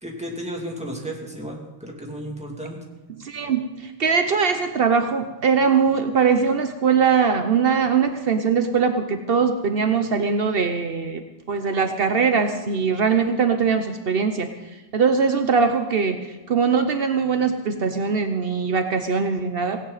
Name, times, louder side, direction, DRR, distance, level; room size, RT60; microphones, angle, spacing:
voice 1, 0.0-2.8, right 1 dB, 5° right, -1 dB, 2.5 m, -33 dB
voice 2, 3.2-11.2 11.5-14.5 14.9-19.8, right 5 dB, 70° right, 7 dB, 0.5 m, -21 dB
17.5 x 17.5 x 4.1 m, 1.2 s
omnidirectional pair, 2.2 m